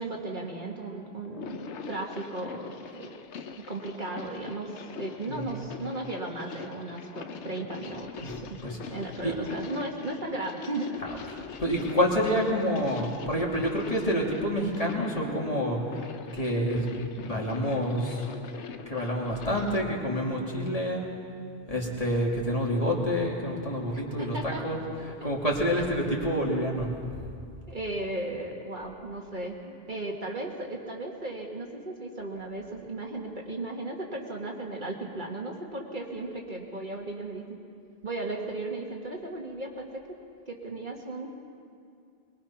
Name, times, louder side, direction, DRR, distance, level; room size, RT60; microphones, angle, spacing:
voice 1, 0.0-3.1 3.7-8.6 8.9-11.0 24.2-24.6 27.7-29.6 29.9-37.6 38.0-40.0 40.5-41.3, right 2 dB, 45° right, 0 dB, 1.9 m, -36 dB
sound 1, 1.2-19.9, left 6 dB, 85° left, 1.1 m, -43 dB
voice 2, 11.3-15.8 16.3-18.2 18.6-21.1 21.7-24.8 25.2-26.9, equal, 35° left, -3 dB, 2.9 m, -28 dB
22.5 x 21.5 x 5.9 m, 2.3 s
omnidirectional pair, 1.1 m